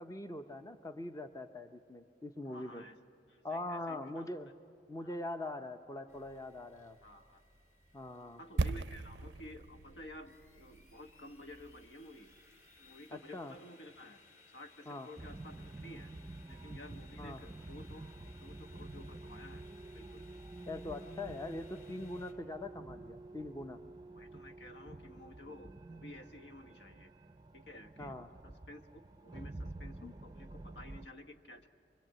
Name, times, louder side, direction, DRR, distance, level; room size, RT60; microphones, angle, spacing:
voice 1, 0.0-2.8 3.4-4.5 4.9-7.0 7.9-8.4 13.1-13.5 14.9-15.1 17.2-17.4 20.7-23.8 28.0-28.3 30.0-30.1, left 2 dB, 20° left, 8 dB, 0.6 m, -42 dB
voice 2, 2.4-3.0 3.3-4.3 5.0-5.1 7.0-7.4 8.4-12.3 12.8-14.2 14.5-16.1 16.5-19.6 19.9-20.2 24.1-27.1 27.5-31.7, left 1 dB, 70° left, 7 dB, 1.2 m, -53 dB
sound 1, 6.1-22.3, left 3 dB, 45° left, 2.4 m, -63 dB
sound 2, 8.6-12.5 12.8-12.9, right 3 dB, 75° right, 0.5 m, -39 dB
sound 3, 15.2-31.1, right 2 dB, 20° right, 0.5 m, -49 dB
24.0 x 22.5 x 8.8 m, 2.2 s
head